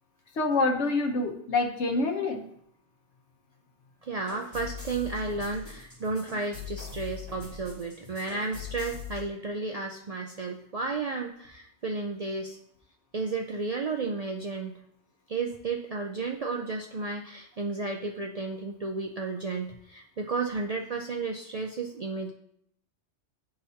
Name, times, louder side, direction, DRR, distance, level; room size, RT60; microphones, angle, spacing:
voice 1, 0.4-2.4, left 3 dB, 80° left, 3 dB, 1.2 m, -26 dB
voice 2, 4.0-12.6 13.1-14.8 15.3-22.3, right 3 dB, 55° right, 1 dB, 0.4 m, -33 dB
sound 1, 4.3-9.2, left 6 dB, 25° right, 2.9 m, -42 dB
11.0 x 4.0 x 2.7 m, 0.71 s
omnidirectional pair, 1.2 m